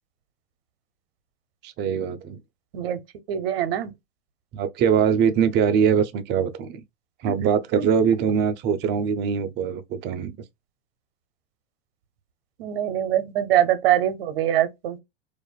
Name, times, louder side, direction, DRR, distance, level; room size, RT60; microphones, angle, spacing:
voice 1, 1.6-2.4 4.5-6.8 7.2-10.4, right 7 dB, 35° right, 0.5 m, -22 dB
voice 2, 3.3-3.9 7.3-7.5 7.8-7.9 8.3-8.4 12.6-15.0, right 11 dB, 70° right, 0.7 m, -23 dB
2.4 x 2.3 x 2.2 m
hypercardioid pair, 105°, 30 cm